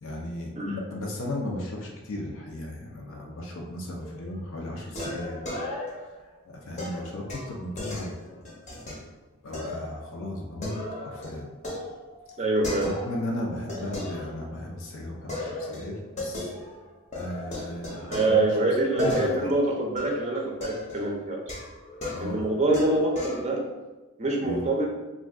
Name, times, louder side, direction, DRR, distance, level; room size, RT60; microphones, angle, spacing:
voice 1, 0.0-5.6 5.9-6.0 6.4-8.4 9.4-11.5 12.8-16.5 17.1-18.6 18.9-19.5 22.1-22.4 24.4-24.6, left 1 dB, 70° left, -1 dB, 0.5 m, -35 dB
sound 1, 4.0-4.4 4.9-6.2 6.8-9.0 9.5-10.0 10.3-13.3 13.7-14.8 15.3-16.8 17.1-23.5, left 2 dB, 35° left, 0.7 m, -36 dB
voice 2, 12.4-12.9 18.1-21.5 22.2-23.6 24.2-24.9, right 2 dB, 30° right, 0 dB, 0.5 m, -25 dB
2.5 x 2.3 x 3.4 m, 1.2 s
head